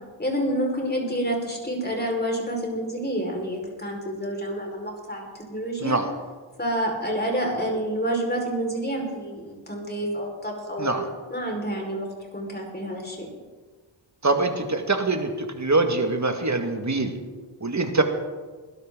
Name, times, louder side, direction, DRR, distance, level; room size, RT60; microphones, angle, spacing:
voice 1, 0.2-6.0 6.6-11.0 11.3-12.1 12.3-13.3, right 1 dB, 20° left, 0 dB, 5.3 m, -28 dB
voice 2, 14.2-17.1 17.6-18.0, right 3 dB, 35° right, 5 dB, 2.1 m, -24 dB
20.5 x 12.5 x 4.0 m, 1.4 s
cardioid pair, 40°, 46 cm